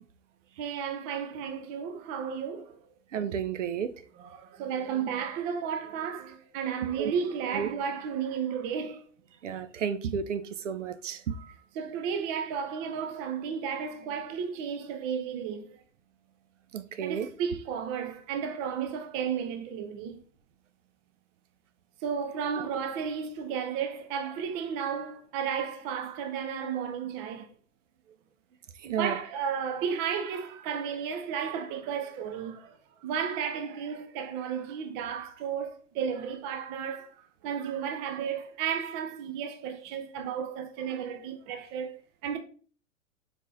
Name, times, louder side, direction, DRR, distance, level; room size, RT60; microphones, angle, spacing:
voice 1, 0.6-2.8 4.1-9.0 11.3-15.8 17.0-20.2 22.0-27.5 28.8-37.1 37.4-42.4, right 7 dB, 20° right, 0.3 m, -33 dB
voice 2, 3.1-3.9 7.0-7.1 7.5-7.7 9.4-11.3 16.7-17.3 28.8-29.2, right 7 dB, 65° right, 0.6 m, -32 dB
4.6 x 4.1 x 2.6 m
figure-of-eight pair, 95°, 39 cm